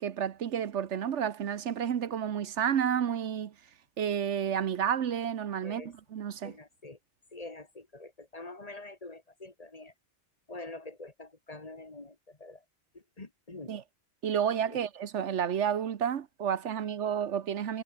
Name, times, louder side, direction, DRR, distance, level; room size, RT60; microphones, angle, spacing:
voice 1, 0.0-3.5 4.0-6.5 13.7-13.8 14.2-17.8, right 8 dB, 75° right, 1.2 m, -30 dB
voice 2, 5.6-5.9 6.4-7.0 7.3-9.9 10.5-12.6 12.9-13.7 14.7-14.8, left 2 dB, 35° left, 1.8 m, -45 dB
omnidirectional pair, 1.2 m